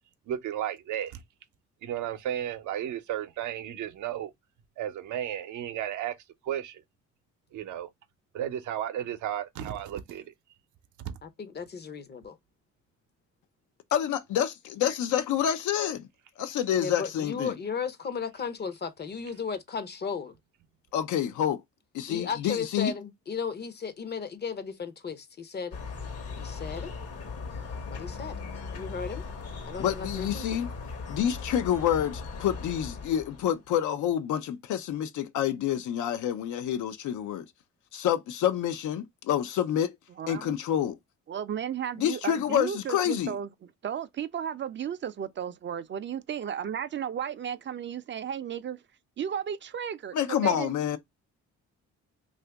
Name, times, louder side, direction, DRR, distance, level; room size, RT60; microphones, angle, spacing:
voice 1, 0.3-1.2 1.8-4.3 4.8-6.1 6.4-6.8 7.5-7.9 8.3-10.3 11.0-11.2, right 10 dB, 80° right, 0.7 m, -33 dB
voice 2, 11.2-12.4 16.8-20.3 22.1-25.8 26.4-26.9 27.9-28.4 28.7-29.2 29.7-30.5, left 6 dB, 35° left, 0.6 m, -35 dB
voice 3, 13.9-16.1 16.4-17.5 20.9-21.6 21.9-22.9 29.8-30.7 31.1-37.5 37.9-40.0 40.3-40.9 42.0-43.3 50.1-51.0, left 10 dB, 75° left, 0.6 m, -28 dB
sound 1, 25.7-33.7, left 4 dB, 55° left, 1.0 m, -38 dB
voice 4, 40.2-40.5 41.3-43.5 43.8-48.8 49.2-50.7, right 8 dB, 40° right, 0.4 m, -34 dB
2.8 x 2.5 x 3.3 m
cardioid pair, 90°, 30 cm